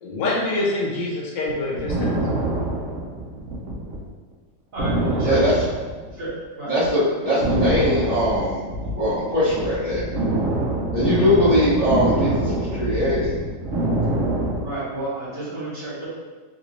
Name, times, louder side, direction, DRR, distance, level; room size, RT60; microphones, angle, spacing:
voice 1, 0.0-2.1, left 2 dB, 75° left, -3 dB, 1.3 m, -25 dB
sound 1, 1.5-4.0 4.3-4.4 4.8-6.4 6.8-7.0 7.4-14.7, right 2 dB, 70° right, 0.8 m, -25 dB
voice 2, 4.7-5.6 6.1-6.3 6.6-6.7 14.6-16.1, right 1 dB, 50° right, -10 dB, 1.6 m, -31 dB
voice 3, 5.2-5.6 6.7-8.6 8.9-10.0 10.9-13.3, left 1 dB, 30° left, -13 dB, 0.7 m, -21 dB
3.3 x 2.6 x 2.9 m, 1.4 s
omnidirectional pair, 1.9 m